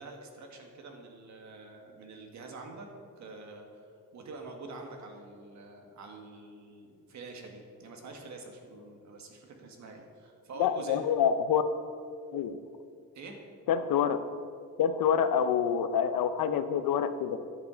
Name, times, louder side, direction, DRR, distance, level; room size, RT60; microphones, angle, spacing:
voice 1, 0.0-2.9 3.2-3.9 4.1-11.0 13.1-13.4, right 3 dB, 55° right, 3 dB, 1.6 m, -46 dB
voice 2, 10.6-11.6 12.3-12.6 13.7-14.2 14.8-17.4, left 8 dB, 90° left, 11 dB, 0.7 m, -27 dB
10.5 x 8.3 x 5.0 m, 2.4 s
cardioid pair, 160°, 34 cm